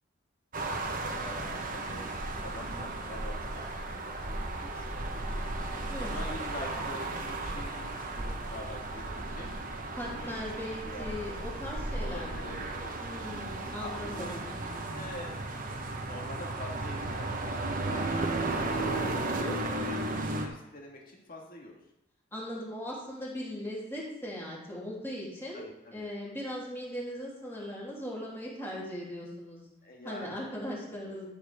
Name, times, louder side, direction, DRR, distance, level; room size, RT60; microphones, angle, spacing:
sound 1, 0.5-20.5, right 2 dB, 45° right, 1.1 m, -35 dB
voice 1, 1.1-5.5 6.0-9.5 10.0-10.5 10.8-11.2 12.0-13.1 13.8-15.6 16.0-18.9 19.5-21.8 25.5-26.1 29.8-31.3, left 1 dB, 45° left, -1 dB, 1.8 m, -45 dB
voice 2, 5.9-6.2 10.0-12.6 13.0-14.3 18.3-18.6 19.2-19.6 22.3-25.7 25.9-29.6 30.0-31.3, left 1 dB, 10° left, -6 dB, 3.2 m, -39 dB
12.5 x 7.0 x 3.6 m, 0.92 s
head